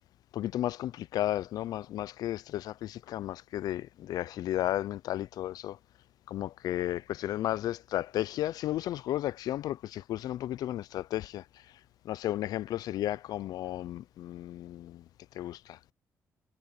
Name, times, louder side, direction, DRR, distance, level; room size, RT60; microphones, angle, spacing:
voice 1, 0.3-5.8 6.3-11.8 12.0-15.1 15.3-15.8, left 13 dB, 80° left, 0.4 m, -33 dB
cardioid pair, 110°, 6 cm